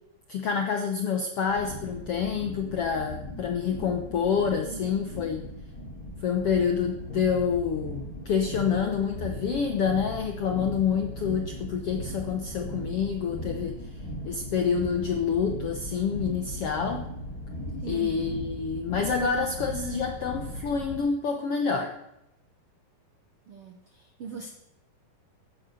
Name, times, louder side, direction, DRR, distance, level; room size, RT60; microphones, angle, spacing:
voice 1, 0.3-5.5 6.2-13.8 14.2-17.1 17.9-21.9, left 6 dB, 80° left, 4 dB, 1.3 m, -27 dB
sound 1, 1.4-20.9, equal, 25° left, 2.8 m, -38 dB
voice 2, 17.8-18.3 23.5-24.5, right 5 dB, 75° right, 5 dB, 1.3 m, -40 dB
14.0 x 9.3 x 6.4 m, 0.87 s
omnidirectional pair, 4.3 m